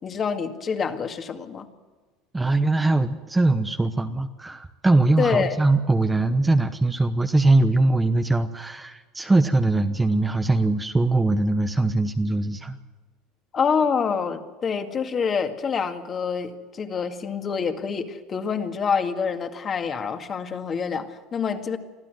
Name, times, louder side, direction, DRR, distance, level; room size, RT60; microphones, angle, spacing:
voice 1, 0.0-1.7 5.2-5.6 13.5-21.8, left 6 dB, 30° left, 6 dB, 2.1 m, -26 dB
voice 2, 2.3-12.8, right 2 dB, 10° right, 7 dB, 1.0 m, -21 dB
24.5 x 14.5 x 7.8 m, 1.3 s
supercardioid pair, 120°, 0 cm